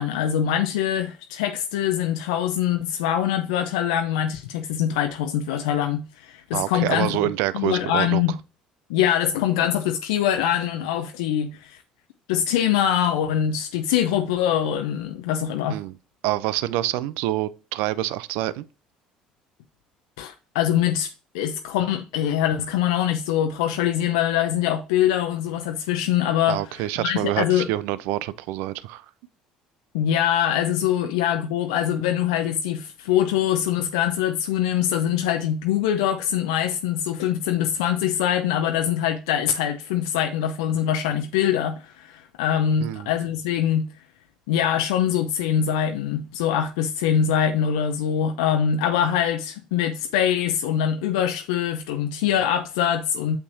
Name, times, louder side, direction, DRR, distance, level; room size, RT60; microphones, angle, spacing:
voice 1, 0.0-8.4 8.9-11.8 12.3-15.8 20.2-21.1 21.3-27.7 29.9-43.9 44.5-53.4, left 10 dB, 75° left, 0.5 m, -23 dB
voice 2, 6.5-8.2 15.7-15.9 16.2-18.6 26.5-29.1 42.8-43.1, right 15 dB, 70° right, 0.4 m, -26 dB
6.5 x 5.5 x 2.7 m
hypercardioid pair, 60°, 3 cm